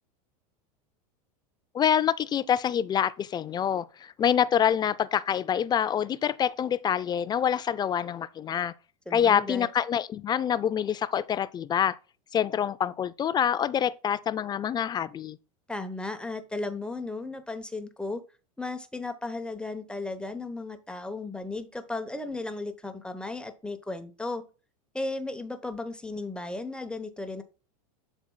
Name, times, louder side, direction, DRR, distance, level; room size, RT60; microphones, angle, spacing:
voice 1, 1.7-8.7 9.1-12.0 12.3-15.4, left 9 dB, 20° left, 0.3 m, -26 dB
voice 2, 9.1-9.7 15.7-18.2 18.6-24.4 24.9-27.4, left 2 dB, 5° left, 0.8 m, -35 dB
11.5 x 4.4 x 2.2 m
supercardioid pair, 115°, 19 cm